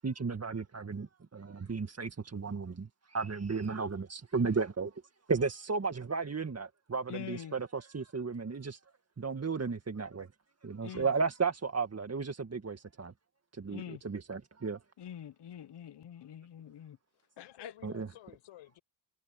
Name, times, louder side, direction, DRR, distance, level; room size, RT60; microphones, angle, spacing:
voice 1, 0.0-4.9 5.3-8.8 9.2-10.3 10.6-13.1 13.5-14.8 17.8-18.1, right 4 dB, 30° right, 1.9 m, -34 dB
voice 2, 7.1-7.5 10.8-11.1 13.7-14.0 15.0-17.0 17.4-17.7, left 9 dB, 60° left, 1.2 m, -45 dB
voice 3, 17.1-18.8, left 14 dB, 85° left, 8.0 m, -54 dB
supercardioid pair, 45°, 47 cm